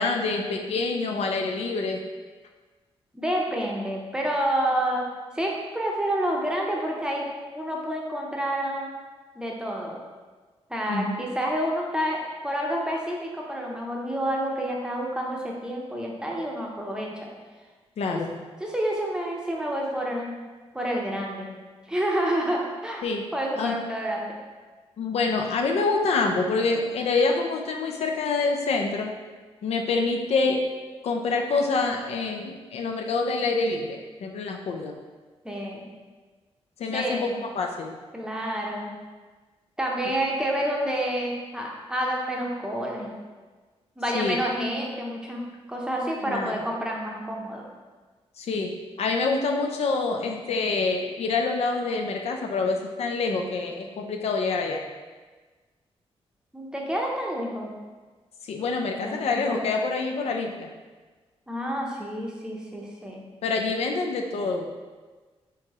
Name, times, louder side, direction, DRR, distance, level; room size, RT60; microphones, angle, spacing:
voice 1, 0.0-2.0 10.9-11.1 18.0-18.3 23.0-23.2 23.6-23.8 25.0-29.1 29.6-30.6 31.0-35.0 36.8-37.9 44.1-44.4 46.2-46.5 48.4-54.9 58.4-60.7 63.4-64.7, left 3 dB, 75° left, 2 dB, 0.4 m, -26 dB
voice 2, 3.1-5.1 5.3-7.2 7.5-8.9 9.3-10.0 10.7-17.3 18.1-18.2 18.6-20.3 20.7-21.5 21.9-23.0 23.3-24.3 35.4-35.9 36.9-37.3 38.1-38.9 39.8-43.1 44.0-45.4 45.7-47.6 56.5-57.7 59.0-59.7 61.5-63.3, right 1 dB, 5° right, -2 dB, 0.7 m, -29 dB
4.6 x 3.5 x 2.9 m, 1.4 s
wide cardioid pair, 130°, 11 cm